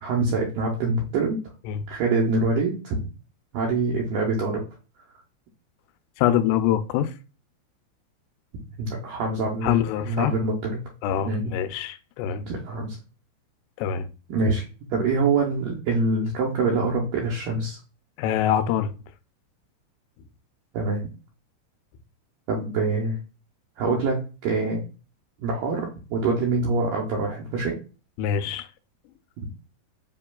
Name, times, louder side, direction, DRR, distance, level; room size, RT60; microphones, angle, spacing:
voice 1, 0.0-1.4 1.9-3.1 3.5-4.6 8.8-9.8 10.0-10.8 11.3-11.4 12.4-13.0 14.3-14.6 14.9-17.8 20.7-21.0 22.5-23.2 23.8-24.8 25.4-27.8 29.4-29.5, right 3 dB, 75° right, 2.2 m, -25 dB
voice 2, 6.2-7.1 9.6-10.3 11.0-12.4 13.8-14.1 18.2-18.9 28.2-28.7, left 10 dB, 90° left, 2.6 m, -24 dB
7.3 x 2.9 x 2.3 m
omnidirectional pair, 4.6 m